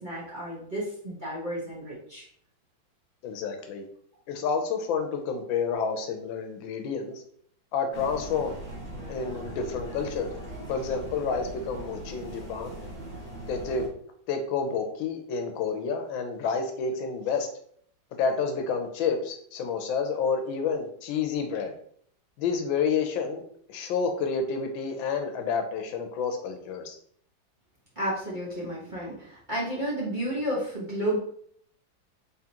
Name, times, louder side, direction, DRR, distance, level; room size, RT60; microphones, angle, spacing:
voice 1, 0.0-2.3 28.0-31.2, right 1 dB, 30° right, -7 dB, 1.1 m, -32 dB
voice 2, 3.2-3.8 4.3-7.2 7.7-8.6 9.1-10.3 10.7-12.7 13.5-13.9 14.3-17.5 18.2-21.7 22.4-23.4 23.7-27.0, left 5 dB, 80° left, 5 dB, 1.4 m, -29 dB
sound 1, 7.9-13.9, right 1 dB, 55° right, 1.8 m, -40 dB
3.8 x 3.6 x 2.8 m, 0.63 s
omnidirectional pair, 2.1 m